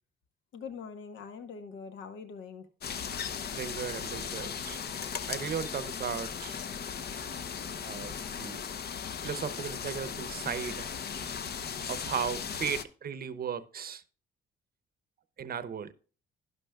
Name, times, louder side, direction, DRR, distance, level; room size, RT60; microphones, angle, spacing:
voice 1, 0.5-2.7, left 6 dB, 75° left, 1.2 m, -43 dB
sound 1, 2.8-12.8, left 7 dB, 55° left, 0.8 m, -37 dB
voice 2, 3.5-4.8 5.3-6.6 7.8-8.6 9.2-10.9 11.9-14.0 15.4-15.9, right 7 dB, 50° right, 0.8 m, -36 dB
11.5 x 11.0 x 2.3 m
cardioid pair, 90°, 20 cm